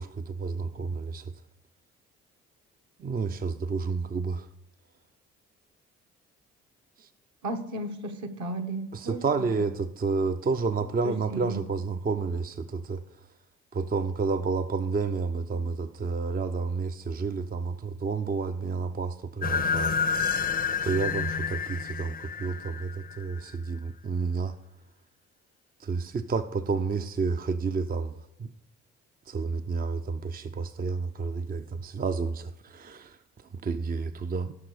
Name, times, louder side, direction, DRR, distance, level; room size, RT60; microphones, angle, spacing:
voice 1, 0.0-1.3 3.0-4.5 7.0-7.1 8.9-13.3 13.7-20.5 20.8-24.6 25.8-28.5 29.3-34.5, right 4 dB, 25° right, 0.6 m, -30 dB
voice 2, 7.4-9.2 11.0-11.6, right 2 dB, 55° right, 1.5 m, -34 dB
sound 1, 19.4-23.4, left 6 dB, 25° left, 0.6 m, -29 dB
16.5 x 6.0 x 4.9 m
hypercardioid pair, 45°, 34 cm